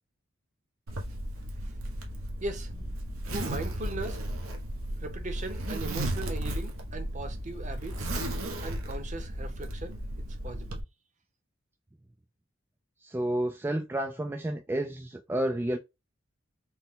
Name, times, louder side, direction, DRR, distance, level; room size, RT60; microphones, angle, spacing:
Zipper (clothing), 0.9-10.8, right 1 dB, 90° right, 1.0 m, -35 dB
voice 1, 3.3-4.3 5.0-8.1 8.6-10.0 10.4-10.8, right 2 dB, 35° right, 0.8 m, -38 dB
voice 2, 13.0-15.8, right 1 dB, 10° right, 0.3 m, -30 dB
4.4 x 2.2 x 3.6 m
head